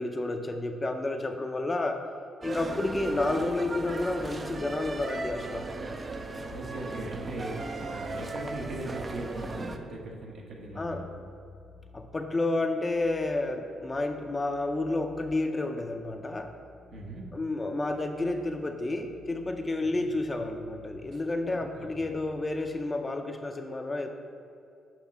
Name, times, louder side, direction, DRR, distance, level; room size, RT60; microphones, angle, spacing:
voice 1, 0.0-2.0 2.4-5.7 10.8-11.0 11.9-16.5 17.3-24.1, left 2 dB, 25° left, 5 dB, 0.5 m, -30 dB
sound 1, 2.4-9.8, right 2 dB, 30° right, 0.5 m, -37 dB
voice 2, 6.5-11.3 16.9-17.3 20.0-20.1 21.1-21.2 21.5-21.6 22.0-22.1, right 2 dB, 65° right, 0 dB, 1.1 m, -39 dB
sound 2, 9.5-22.9, left 4 dB, 90° right, 1.2 m, -56 dB
7.3 x 3.1 x 5.8 m, 2.3 s
cardioid pair, 90°, 0 cm